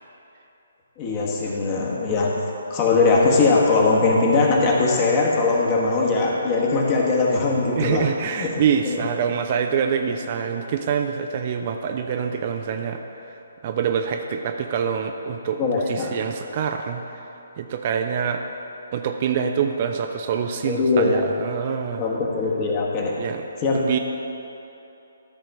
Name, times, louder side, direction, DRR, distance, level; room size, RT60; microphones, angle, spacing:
voice 1, 1.0-2.4 2.7-8.6 8.8-9.1 15.6-16.1 20.6-21.3 22.0-23.2 23.6-24.0, left 3 dB, 25° left, -2 dB, 1.3 m, -21 dB
voice 2, 7.8-13.0 13.6-15.6 15.9-17.0 17.6-18.4 18.9-22.1 23.2-23.4 23.7-24.0, right 7 dB, 35° right, 4 dB, 0.4 m, -25 dB
13.0 x 4.4 x 5.2 m, 2.9 s
figure-of-eight pair, 135°, 0 cm